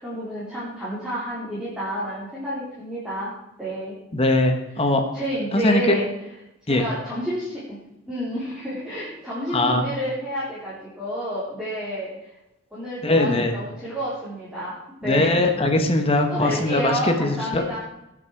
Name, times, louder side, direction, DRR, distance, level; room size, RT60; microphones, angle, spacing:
voice 1, 0.0-3.3 3.6-4.0 5.1-6.0 6.7-7.8 8.1-12.3 12.7-14.7 15.0-15.4 16.3-17.8, equal, 5° right, -10 dB, 3.4 m, -30 dB
voice 2, 4.1-5.0 5.5-5.9 6.7-6.9 9.5-9.9 13.0-13.5 15.0-17.8, left 2 dB, 30° left, 5 dB, 1.1 m, -21 dB
18.5 x 6.3 x 4.6 m, 0.89 s
head